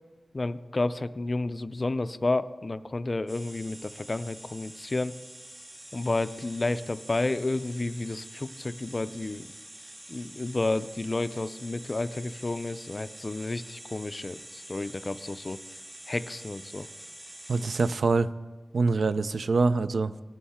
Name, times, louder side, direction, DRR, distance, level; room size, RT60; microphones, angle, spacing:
voice 1, 0.3-5.2 5.9-9.5 10.1-15.6 16.1-16.9, left 2 dB, 35° left, 13 dB, 0.3 m, -31 dB
sound 1, 3.3-17.9, right 1 dB, 45° right, 2.0 m, -46 dB
voice 2, 17.5-18.3 18.7-20.1, right 3 dB, 70° right, 13 dB, 0.4 m, -24 dB
18.0 x 7.1 x 3.6 m, 1.3 s
wide cardioid pair, 110°, 0 cm